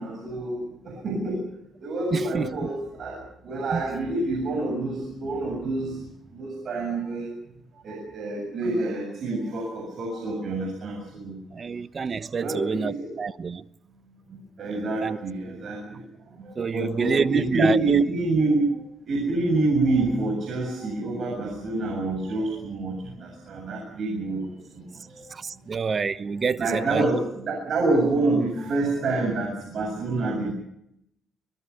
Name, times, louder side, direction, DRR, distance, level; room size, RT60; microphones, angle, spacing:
voice 1, 0.0-1.4 1.8-6.0 6.3-7.3 7.8-11.4 12.4-13.1 14.3-16.0 16.4-25.2 25.7-25.9 26.6-30.5, right 2 dB, 60° right, 7.2 m, -27 dB
voice 2, 2.1-2.5 3.7-3.8 11.5-13.6 14.8-15.2 16.6-18.0 25.3-27.0, right 5 dB, 40° right, 0.9 m, -27 dB
24.0 x 21.0 x 7.0 m
cardioid pair, 90°, 0 cm